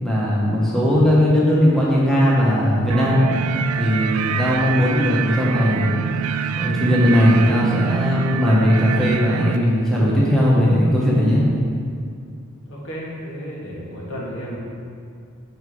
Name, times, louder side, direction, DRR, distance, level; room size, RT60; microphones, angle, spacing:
voice 1, 0.0-3.2 3.8-5.9 6.5-11.4, equal, ahead, -7 dB, 1.1 m, -18 dB
sound 1, 2.9-9.6, right 7 dB, 80° right, 0.3 m, -26 dB
voice 2, 12.7-14.6, equal, 60° left, -5 dB, 1.7 m, -33 dB
6.6 x 4.8 x 5.0 m, 2.2 s
head